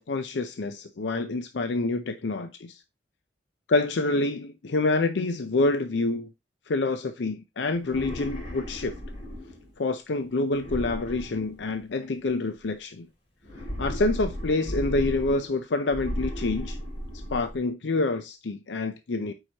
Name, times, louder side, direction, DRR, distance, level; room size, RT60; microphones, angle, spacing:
voice 1, 0.0-2.7 3.7-6.3 6.7-8.9 9.8-13.1 13.8-16.8 17.3-19.3, left 2 dB, 75° left, 0.6 m, -27 dB
sound 1, 7.8-9.7 10.6-12.0 13.4-15.6 15.9-17.6, equal, 35° left, 2.7 m, -35 dB
8.8 x 4.8 x 2.9 m
head